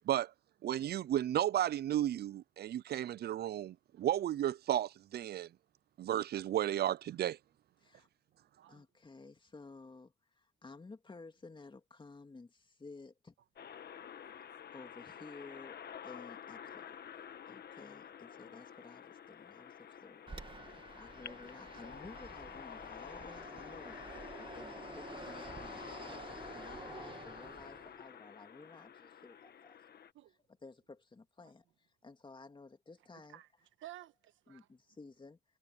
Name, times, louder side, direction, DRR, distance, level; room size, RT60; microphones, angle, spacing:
voice 1, 0.6-5.5 6.0-7.4, right 12 dB, 55° right, 0.5 m, -33 dB
voice 2, 8.7-13.4 14.7-17.0 17.5-26.0 26.5-29.8 30.6-33.4 34.5-35.4, left 3 dB, 25° left, 2.4 m, -54 dB
sound 1, 13.6-30.1, left 8 dB, 55° left, 1.4 m, -50 dB
Fixed-wing aircraft airplane, 20.3-28.1, right 3 dB, 25° right, 2.2 m, -50 dB
voice 3, 33.8-34.7, right 14 dB, 75° right, 1.4 m, -55 dB
cardioid pair, 90°, 20 cm